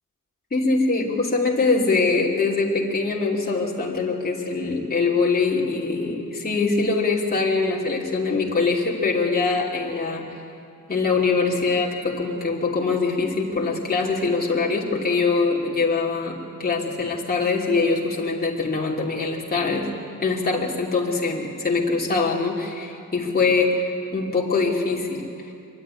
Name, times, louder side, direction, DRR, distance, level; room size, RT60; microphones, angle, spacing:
voice 1, 0.5-10.4 10.9-19.9 20.2-25.5, left 4 dB, 30° left, -4 dB, 3.0 m, -23 dB
24.0 x 12.5 x 9.9 m, 2.7 s
wide cardioid pair, 135°, 32 cm